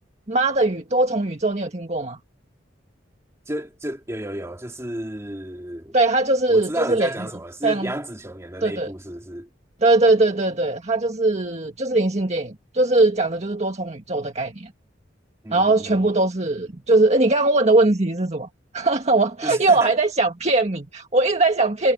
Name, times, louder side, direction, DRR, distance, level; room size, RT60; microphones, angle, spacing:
voice 1, 0.3-2.2 5.9-7.1 7.6-7.9 8.6-8.9 9.8-14.7 15.5-18.5 18.7-21.9, right 2 dB, 35° right, 1.7 m, -20 dB
voice 2, 3.5-6.0 6.5-9.5 15.4-16.0 19.4-20.0, right 1 dB, 15° right, 2.3 m, -32 dB
head